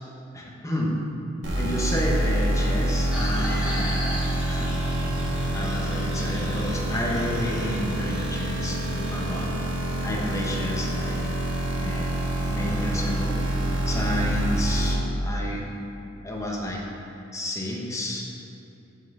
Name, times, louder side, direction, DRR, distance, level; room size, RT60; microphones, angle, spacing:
voice 1, 0.3-1.0 1.6-4.0 4.5-4.7 5.5-9.5 10.0-11.2 11.8-12.1 12.5-13.3 13.9-15.6 16.2-16.8 17.3-18.2, left 1 dB, 15° left, -2 dB, 1.1 m, -30 dB
sound 1, 1.4-14.9, right 1 dB, 85° right, 1.6 m, -26 dB
sound 2, 3.1-9.5, equal, 5° right, 1.2 m, -37 dB
5.9 x 5.7 x 6.6 m, 2.9 s
head